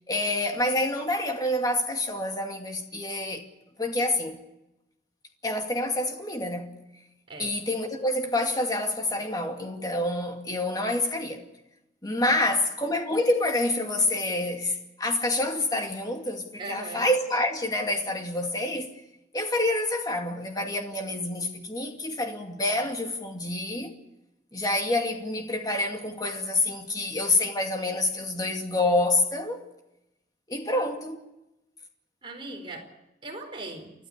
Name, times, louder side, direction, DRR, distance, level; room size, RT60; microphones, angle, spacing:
voice 1, 0.1-3.4 3.8-4.4 5.4-6.7 7.4-11.4 12.0-18.9 19.3-23.9 24.5-29.6 30.5-31.2, left 2 dB, 20° left, 2.3 m, -27 dB
voice 2, 16.6-17.1 32.2-32.9 33.2-33.9, right 2 dB, 30° right, 4.6 m, -39 dB
30.0 x 12.0 x 8.5 m
head